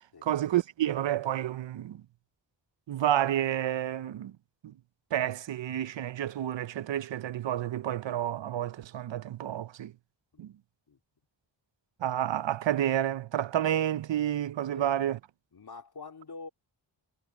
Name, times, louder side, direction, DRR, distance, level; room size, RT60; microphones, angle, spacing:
voice 1, 0.2-2.0 2.9-4.3 4.6-4.7 5.1-9.9 10.4-10.5 12.0-15.2, right 11 dB, 75° right, 0.6 m, -30 dB
voice 2, 15.5-16.5, left 4 dB, 55° left, 3.2 m, -45 dB
wide cardioid pair, 85°, 45 cm